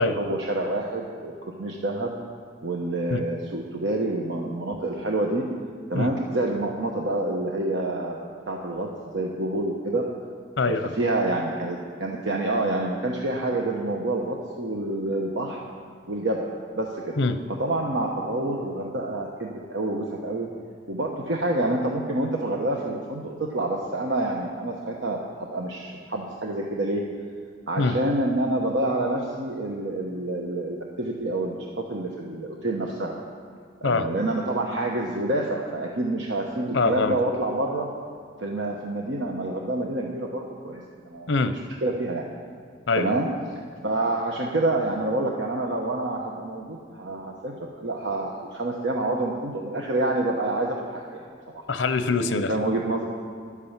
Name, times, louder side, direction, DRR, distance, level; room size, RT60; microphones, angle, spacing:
voice 1, 0.0-2.1 2.6-5.4 5.9-8.9 9.1-10.0 10.7-15.6 16.1-16.5 16.7-17.2 17.6-20.5 20.9-27.0 27.7-33.2 33.8-37.9 38.4-41.3 41.8-42.3 43.0-43.3 43.8-51.3 51.5-51.6 52.5-53.0, right 2 dB, 75° right, -1 dB, 1.0 m, -27 dB
voice 2, 10.6-10.9 17.2-17.4 27.8-28.0 33.8-34.1 36.7-37.2 41.3-41.5 42.9-43.1 51.7-52.5, left 3 dB, 85° left, 10 dB, 0.7 m, -23 dB
11.0 x 8.4 x 7.3 m, 2.2 s
head